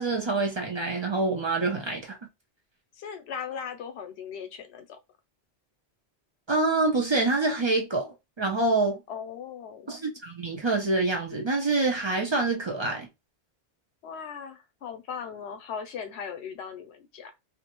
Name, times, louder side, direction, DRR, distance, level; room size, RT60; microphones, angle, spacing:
voice 1, 0.0-2.2 6.5-9.0 9.9-13.1, right 3 dB, 40° right, 0.4 m, -26 dB
voice 2, 2.9-5.0 9.1-10.0 14.0-17.3, left 7 dB, 80° left, 0.8 m, -38 dB
2.4 x 2.1 x 2.9 m
omnidirectional pair, 1.1 m